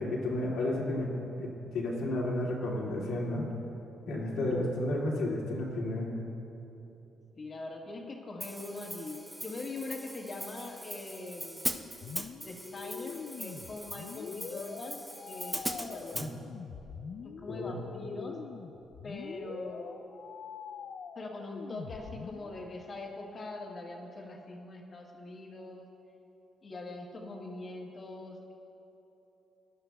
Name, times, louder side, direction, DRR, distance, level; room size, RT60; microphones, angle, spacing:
voice 1, 0.0-3.5 4.1-6.2 16.1-16.3 17.5-17.7, left 1 dB, 80° left, -3 dB, 2.2 m, -32 dB
voice 2, 7.4-11.7 12.4-16.4 17.2-18.4 19.0-20.1 21.1-25.9 26.6-28.5, left 2 dB, 40° left, 0 dB, 1.6 m, -42 dB
Hi-hat, 8.4-16.3, equal, 5° right, 0.7 m, -40 dB
sound 1, 12.0-22.5, left 6 dB, 60° left, 0.4 m, -44 dB
19.0 x 11.0 x 2.3 m, 3.0 s
cardioid pair, 90°, 0 cm